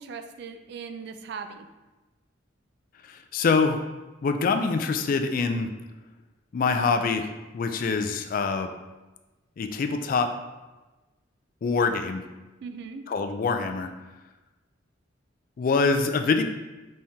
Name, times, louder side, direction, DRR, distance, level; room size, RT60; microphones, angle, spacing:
voice 1, 0.0-1.7 12.6-13.0, right 5 dB, 55° right, 7 dB, 0.3 m, -39 dB
voice 2, 3.0-3.8 4.2-5.7 6.5-8.7 9.6-10.3 11.6-12.2 13.1-13.9 15.6-16.4, left 4 dB, 45° left, 7 dB, 0.3 m, -25 dB
4.3 x 3.5 x 2.7 m, 1.1 s
head